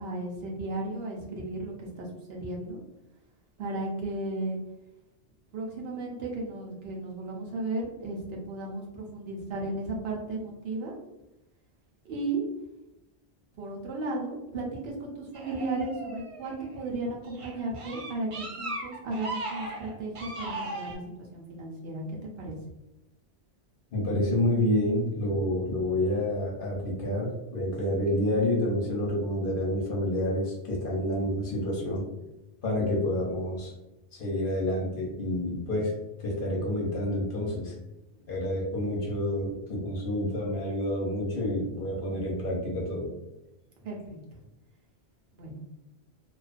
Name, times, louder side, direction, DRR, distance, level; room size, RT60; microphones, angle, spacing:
voice 1, 0.0-2.8 3.6-4.6 5.5-10.9 12.0-12.4 13.6-22.6 38.1-38.3 43.8-44.0 45.3-45.6, right 2 dB, 65° right, -2 dB, 0.8 m, -35 dB
sound 1, 15.3-16.7 17.2-21.0, right 2 dB, 50° right, 0.4 m, -37 dB
voice 2, 23.9-32.1 32.6-33.7 34.1-35.9 36.2-37.7 38.3-43.1, left 1 dB, 55° left, -3 dB, 0.8 m, -28 dB
2.4 x 2.2 x 2.4 m, 0.97 s
omnidirectional pair, 1.2 m